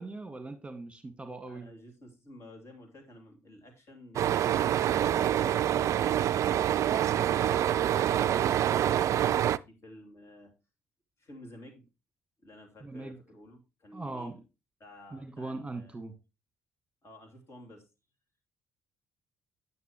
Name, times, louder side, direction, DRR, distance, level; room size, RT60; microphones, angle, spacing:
voice 1, 0.0-1.7 12.8-13.2 13.9-14.4 15.1-16.1, right 2 dB, 15° right, 7 dB, 1.6 m, -40 dB
voice 2, 1.5-10.5 11.2-11.9 12.4-14.4 14.8-15.9 17.0-17.9, left 1 dB, 45° left, 3 dB, 2.7 m, -52 dB
sound 1, 4.2-9.6, right 11 dB, 55° right, 0.3 m, -26 dB
9.3 x 7.0 x 2.9 m, 0.27 s
hypercardioid pair, 50°, 6 cm